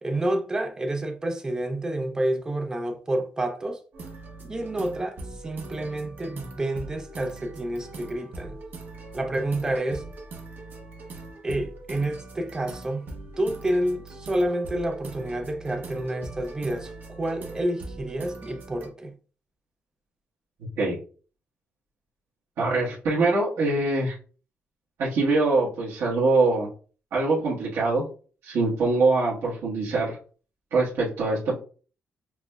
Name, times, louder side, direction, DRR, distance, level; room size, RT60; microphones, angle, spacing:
voice 1, 0.0-3.8 4.5-8.6 9.1-10.0 11.4-13.1 13.4-19.1, right 1 dB, 15° right, 0.5 m, -29 dB
sound 1, 3.9-18.9, right 2 dB, 45° right, 0.8 m, -42 dB
voice 2, 22.6-24.2 25.0-26.7 27.1-28.0 28.4-30.2 30.7-31.6, right 3 dB, 80° right, 1.2 m, -23 dB
5.9 x 2.0 x 2.3 m
cardioid pair, 165°, 4 cm